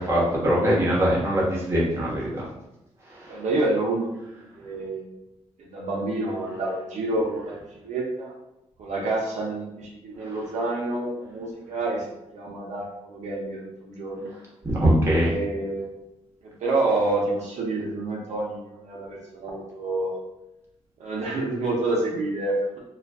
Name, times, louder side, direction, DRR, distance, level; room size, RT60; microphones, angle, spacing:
voice 1, 0.0-2.4 3.1-3.3 10.2-10.3 14.6-15.3, equal, 20° right, -6 dB, 1.1 m, -22 dB
voice 2, 3.3-5.1 5.6-8.3 8.8-12.1 12.3-14.3 15.2-15.9 16.4-20.1 21.0-22.8, right 2 dB, 75° right, -3 dB, 0.7 m, -28 dB
2.4 x 2.3 x 3.4 m, 0.91 s
cardioid pair, 110°, 12 cm